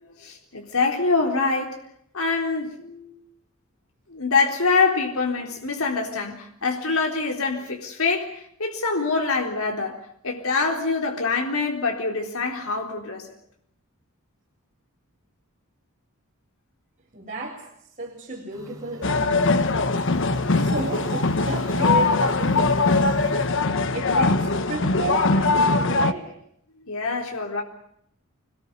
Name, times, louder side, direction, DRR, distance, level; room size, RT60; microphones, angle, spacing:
voice 1, 0.0-1.8 2.1-3.3 4.1-13.3 26.9-27.6, left 4 dB, 80° left, 3.9 m, -25 dB
voice 2, 17.1-17.7 18.0-19.7 20.5-26.3, right 3 dB, 35° right, 4.5 m, -33 dB
sound 1, 18.5-23.5, right 1 dB, 15° right, 5.6 m, -39 dB
sound 2, 19.0-26.1, left 3 dB, 65° left, 1.3 m, -21 dB
27.0 x 20.5 x 8.4 m
head